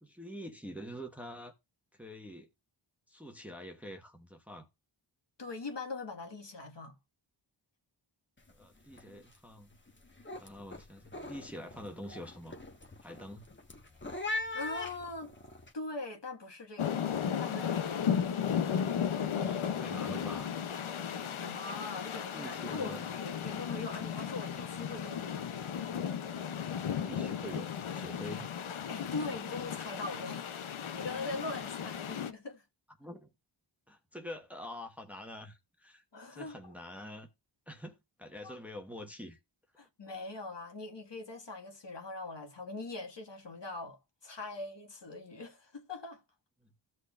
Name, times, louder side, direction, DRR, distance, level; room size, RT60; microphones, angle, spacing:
voice 1, 0.0-1.5 1.9-2.5 3.1-4.7 8.5-9.7 10.4-12.6 13.0-13.5 19.2-20.5 22.3-23.0 26.6-28.6 30.8-31.1 33.0-33.3 33.9-36.0 36.3-37.3 37.7-39.4 46.6-46.7, equal, 5° right, 1.1 m, -46 dB
voice 2, 5.4-7.0 14.5-15.3 15.7-17.0 17.4-18.1 21.3-25.4 28.9-30.5 30.7-32.6 36.1-36.7 38.4-38.6 39.8-46.2, left 3 dB, 60° left, 1.7 m, -42 dB
sound 1, 8.4-8.6 8.9-9.4 9.7-15.7, left 2 dB, 25° left, 1.2 m, -41 dB
sound 2, 16.8-32.3, left 8 dB, 80° left, 0.7 m, -35 dB
15.0 x 6.3 x 2.4 m
wide cardioid pair, 50°, 48 cm